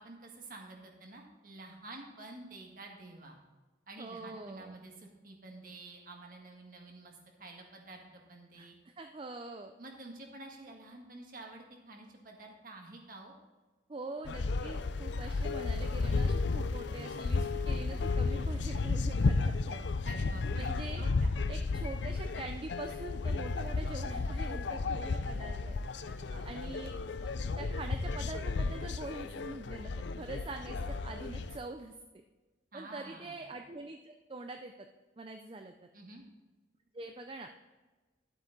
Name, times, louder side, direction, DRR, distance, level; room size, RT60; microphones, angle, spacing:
voice 1, 0.0-3.4 3.9-8.7 9.8-13.4 20.0-21.3 26.0-26.8 32.7-33.4 35.9-36.2, right 2 dB, 45° right, 1 dB, 1.7 m, -50 dB
voice 2, 4.0-4.8 8.5-9.7 13.9-19.8 20.6-21.0 21.5-25.8 26.4-26.9 27.2-32.2 32.7-34.7 35.2-35.9 36.9-37.5, right 2 dB, 30° right, 5 dB, 0.4 m, -44 dB
sound 1, 14.2-31.6, left 3 dB, 70° left, 0.5 m, -33 dB
12.0 x 8.1 x 4.0 m, 1.2 s
head